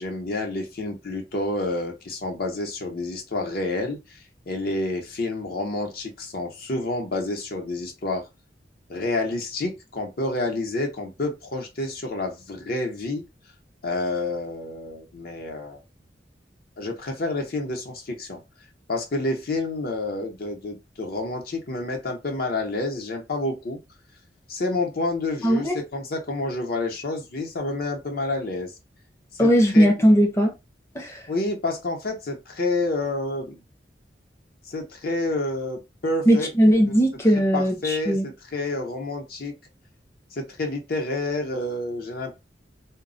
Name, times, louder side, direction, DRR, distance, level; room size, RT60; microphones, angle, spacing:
voice 1, 0.0-4.2 4.5-8.3 8.9-13.2 13.8-15.8 16.8-18.4 18.9-23.8 24.5-28.7 29.3-29.9 31.3-33.6 34.7-36.5 37.5-39.6 40.3-42.3, left 2 dB, 60° left, 0.7 m, -29 dB
voice 2, 25.4-25.8 29.4-30.5 30.9-31.2 36.3-38.3, equal, 15° left, 0.6 m, -19 dB
2.2 x 2.0 x 3.7 m
head